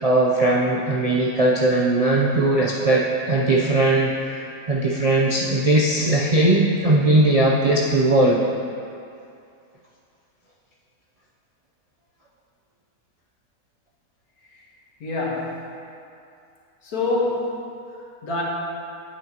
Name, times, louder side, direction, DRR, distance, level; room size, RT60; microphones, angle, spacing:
voice 1, 0.0-4.3 4.7-8.4, right 2 dB, 50° right, -5 dB, 0.4 m, -19 dB
voice 2, 15.0-15.7 16.8-18.4, left 2 dB, 80° left, -4 dB, 1.9 m, -27 dB
8.9 x 8.2 x 2.9 m, 2.5 s
omnidirectional pair, 1.5 m